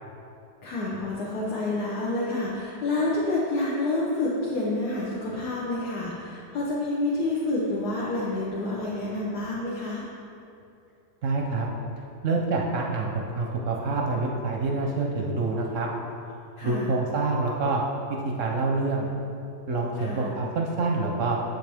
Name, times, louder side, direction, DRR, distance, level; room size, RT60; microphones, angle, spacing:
voice 1, 0.6-10.0 16.6-16.9 20.0-20.3, left 2 dB, 65° left, -5 dB, 1.5 m, -28 dB
voice 2, 11.2-11.7 12.2-15.9 16.6-17.8 18.4-19.1 19.7-21.4, right 3 dB, 60° right, -1 dB, 0.8 m, -26 dB
7.6 x 6.4 x 3.4 m, 2.7 s
omnidirectional pair, 1.9 m